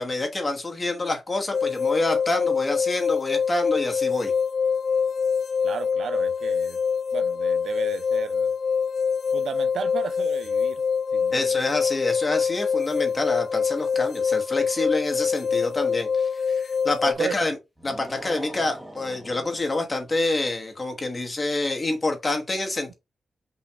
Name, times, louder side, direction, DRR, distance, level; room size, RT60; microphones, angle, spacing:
voice 1, 0.0-4.3 11.3-17.6 17.8-22.9, left 2 dB, 25° left, 1.1 m, -27 dB
sound 1, 1.5-17.1, left 6 dB, 50° left, 0.3 m, -25 dB
voice 2, 5.6-6.8 7.1-8.5 9.3-10.8 11.1-11.5 17.1-17.4, right 6 dB, 75° right, 0.5 m, -33 dB
sound 2, 17.8-20.1, equal, 5° right, 0.9 m, -42 dB
5.6 x 2.5 x 3.3 m
wide cardioid pair, 175°, 0 cm